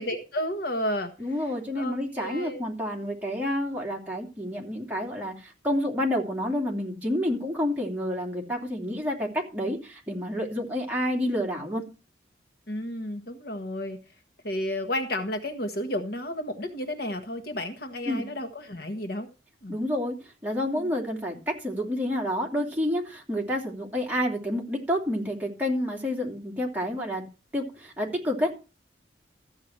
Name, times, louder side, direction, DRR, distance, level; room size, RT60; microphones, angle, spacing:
voice 1, 0.0-1.1 1.8-2.6 12.7-14.0 14.4-19.3 19.6-19.8 20.7-20.9, left 1 dB, 55° left, 6 dB, 1.5 m, -32 dB
voice 2, 1.2-11.8 18.1-18.3 19.7-20.1 20.4-27.2 27.5-28.5, left 1 dB, 10° right, -1 dB, 2.9 m, -29 dB
14.5 x 8.2 x 4.5 m, 0.32 s
head